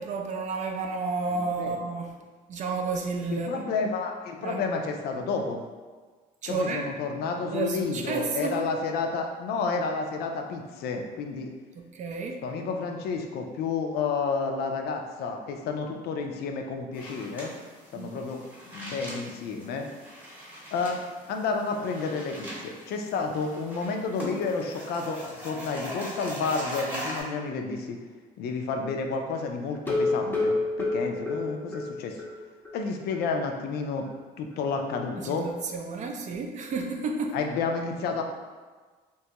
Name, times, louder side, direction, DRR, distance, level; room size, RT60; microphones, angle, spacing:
voice 1, 0.0-2.2 2.5-3.6 4.4-4.6 6.4-6.9 7.5-8.7 11.8-12.4 17.9-18.3 35.2-37.4, right 4 dB, 45° right, 2 dB, 0.4 m, -31 dB
voice 2, 1.3-1.9 3.3-5.6 6.5-11.5 12.4-17.5 17.9-18.4 18.7-19.9 20.7-21.0 21.3-28.0 28.4-32.2 32.7-34.1 34.4-35.5 37.3-38.2, left 4 dB, 70° left, 4 dB, 0.4 m, -30 dB
sound 1, 16.9-27.2, equal, 10° right, 0.9 m, -41 dB
sound 2, 29.7-32.3 32.6-32.7 33.1-33.2 33.6-33.7, left 2 dB, 10° left, 0.6 m, -28 dB
3.0 x 2.2 x 2.8 m, 1.4 s
cardioid pair, 110°, 17 cm